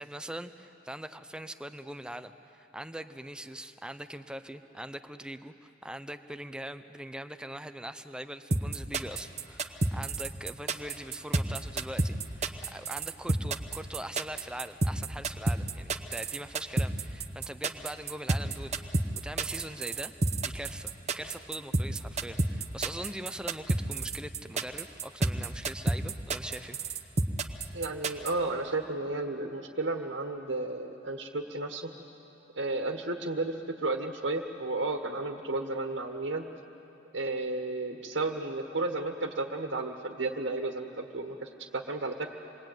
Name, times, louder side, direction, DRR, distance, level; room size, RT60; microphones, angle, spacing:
voice 1, 0.0-18.8 19.2-20.1 20.4-27.0, right 1 dB, 5° right, 9 dB, 0.8 m, -42 dB
sound 1, 8.5-28.3, right 2 dB, 40° right, 1.1 m, -29 dB
voice 2, 27.7-31.9 32.5-36.5 37.1-42.3, right 2 dB, 80° right, 4 dB, 1.6 m, -33 dB
27.5 x 21.5 x 9.2 m, 2.9 s
head